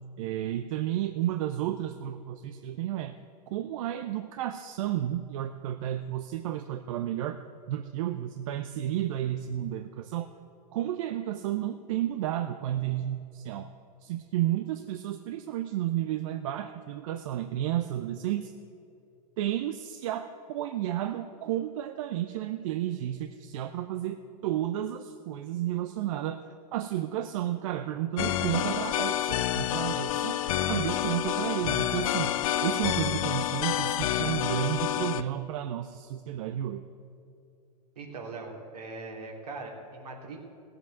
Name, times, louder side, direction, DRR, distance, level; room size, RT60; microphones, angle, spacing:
voice 1, 0.2-3.1 3.5-7.4 7.7-10.3 10.7-13.7 14.0-18.5 19.4-26.4 26.7-30.4 30.7-32.3 32.6-36.8, right 12 dB, 55° right, 9 dB, 0.6 m, -32 dB
sound 1, 28.2-35.2, left 12 dB, 60° left, 0.6 m, -28 dB
voice 2, 37.9-40.4, right 3 dB, 75° right, -1 dB, 3.2 m, -41 dB
17.0 x 7.9 x 8.0 m, 2.6 s
figure-of-eight pair, 100°, 20 cm